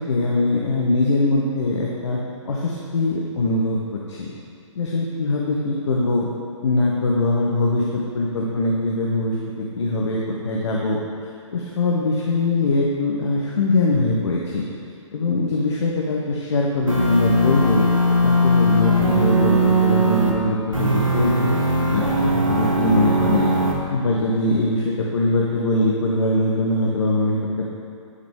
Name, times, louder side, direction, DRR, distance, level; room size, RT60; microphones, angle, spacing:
voice 1, 0.1-2.2 2.5-4.3 4.8-6.3 6.6-9.3 9.7-11.0 11.5-14.7 15.1-17.9 18.2-21.5 21.9-23.5 23.9-27.4, left 2 dB, 60° left, -3 dB, 0.8 m, -22 dB
sound 1, 16.9-20.3 20.7-23.7, right 1 dB, 90° right, 1.1 m, -19 dB
9.6 x 3.9 x 3.7 m, 2.4 s
figure-of-eight pair, 125°, 16 cm